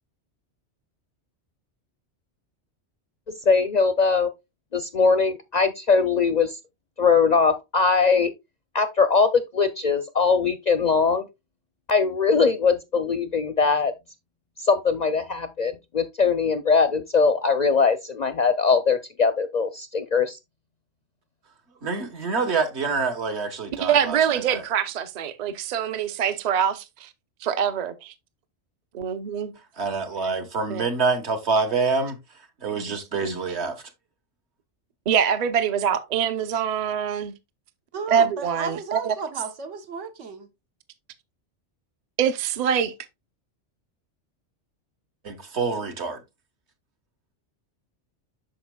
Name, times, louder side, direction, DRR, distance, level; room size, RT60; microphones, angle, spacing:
voice 1, 3.5-4.3 4.7-6.6 7.0-8.3 8.7-11.3 11.9-13.9 14.6-20.4, left 5 dB, 55° left, 0.5 m, -21 dB
voice 2, 21.8-24.6 29.8-32.2 32.6-33.8 45.2-46.2, right 4 dB, 65° right, 1.5 m, -26 dB
voice 3, 23.8-27.1 27.4-28.1 28.9-29.5 30.7-30.9 33.2-33.5 35.1-37.3 38.1-39.1 42.2-42.9, right 8 dB, 45° right, 0.7 m, -24 dB
voice 4, 37.9-40.5, right 5 dB, 85° right, 1.4 m, -33 dB
8.6 x 6.1 x 2.2 m
omnidirectional pair, 1.2 m